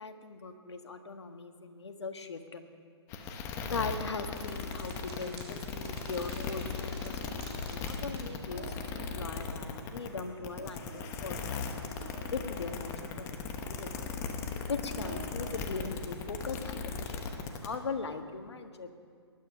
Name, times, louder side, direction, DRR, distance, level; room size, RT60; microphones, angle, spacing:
voice 1, 0.0-2.6 3.7-8.7 8.9-12.0 12.3-13.4 13.7-14.0 14.7-18.9, left 4 dB, 75° left, 7 dB, 1.6 m, -40 dB
sound 1, 3.1-17.8, left 5 dB, 20° left, 1.1 m, -37 dB
sound 2, 3.2-9.1, right 3 dB, 70° right, 4.1 m, -53 dB
sound 3, 8.5-16.1, right 7 dB, 35° right, 1.2 m, -53 dB
19.5 x 12.0 x 5.6 m, 2.2 s
hypercardioid pair, 145°, 14 cm